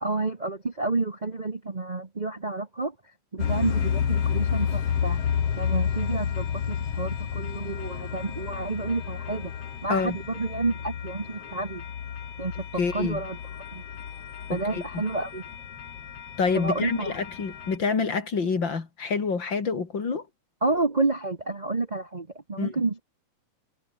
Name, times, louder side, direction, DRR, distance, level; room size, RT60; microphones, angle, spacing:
voice 1, 0.0-2.9 3.3-5.2 5.6-9.5 9.8-11.8 12.4-12.6 12.9-13.4 13.7-13.8 14.5-15.4 16.5-17.2 20.6-23.0, right 3 dB, 45° right, 0.5 m, -29 dB
sound 1, 3.4-17.8, left 8 dB, 55° left, 2.9 m, -31 dB
voice 2, 12.8-13.2 14.5-14.8 16.4-20.3 22.6-22.7, left 5 dB, 40° left, 3.3 m, -27 dB
omnidirectional pair, 3.3 m